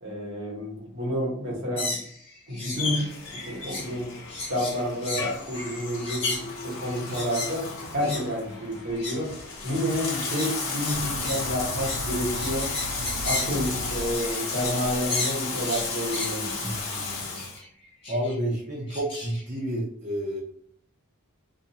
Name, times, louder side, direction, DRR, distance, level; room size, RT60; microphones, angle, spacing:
voice 1, 0.0-2.0 2.5-4.1 4.5-9.3 9.6-12.7 13.2-16.7, equal, 60° right, -3 dB, 1.1 m, -30 dB
sound 1, 1.8-2.9 3.2-4.0 4.3-7.6 8.0-8.3 8.8-9.3 9.8-14.8 15.1-16.4 17.3-17.7 18.0-18.3 18.9-19.4, left 3 dB, 25° left, 0.9 m, -35 dB
Bathtub (filling or washing), 2.7-17.6, left 4 dB, 60° left, 0.7 m, -33 dB
sound 2, 10.9-14.7, right 2 dB, 75° right, 0.3 m, -37 dB
voice 2, 16.6-17.4 18.1-20.4, right 1 dB, 35° right, -8 dB, 0.6 m, -30 dB
2.5 x 2.2 x 2.7 m, 0.64 s
head